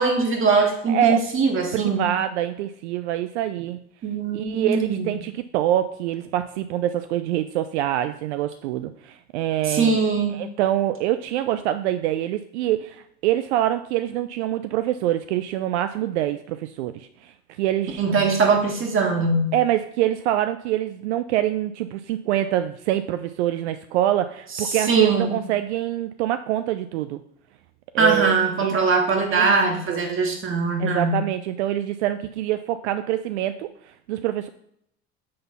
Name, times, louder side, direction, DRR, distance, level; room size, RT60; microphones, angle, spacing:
voice 1, 0.0-2.1 4.0-5.1 9.7-10.4 18.0-19.5 24.6-25.3 28.0-31.2, right 4 dB, 40° right, 3 dB, 2.0 m, -21 dB
voice 2, 0.9-1.2 1.7-3.8 4.3-10.0 10.3-18.0 19.5-27.2 27.9-28.7 29.3-29.6 29.9-30.0 30.8-34.5, right 12 dB, 80° right, 10 dB, 0.5 m, -25 dB
7.6 x 4.0 x 5.4 m, 0.71 s
hypercardioid pair, 80°, 34 cm